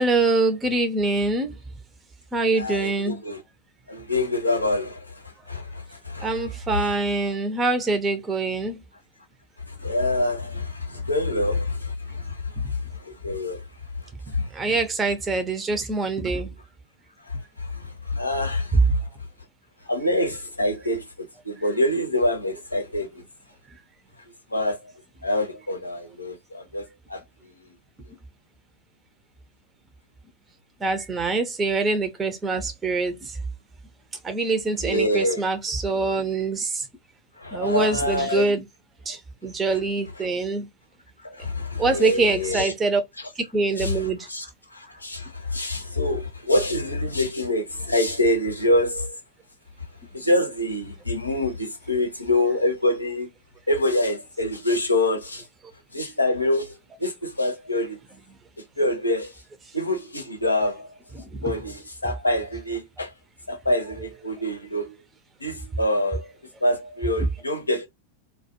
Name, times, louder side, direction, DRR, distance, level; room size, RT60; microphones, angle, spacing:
voice 1, 0.0-1.6 2.3-3.2 6.2-8.8 14.5-16.5 30.8-33.3 34.2-36.8 37.5-38.6 39.1-40.7 41.8-43.0 43.5-44.3 61.2-61.5, right 3 dB, 20° right, 0.6 m, -24 dB
voice 2, 2.5-3.4 3.9-7.0 9.7-13.6 14.3-14.5 17.3-19.0 19.9-21.0 21.4-23.2 24.5-24.9 25.2-27.2 27.6-27.7 34.7-35.4 37.4-38.6 39.7-39.8 40.2-40.3 41.2-42.7 43.2-43.3 43.8-49.2 50.1-53.3 53.7-55.4 55.9-56.7 57.0-58.0 58.8-59.3 59.7-60.9 61.4-63.1 63.5-65.0 65.4-66.3 66.6-67.9, left 1 dB, 85° left, 0.7 m, -26 dB
2.2 x 2.2 x 2.7 m
figure-of-eight pair, 90°, 0 cm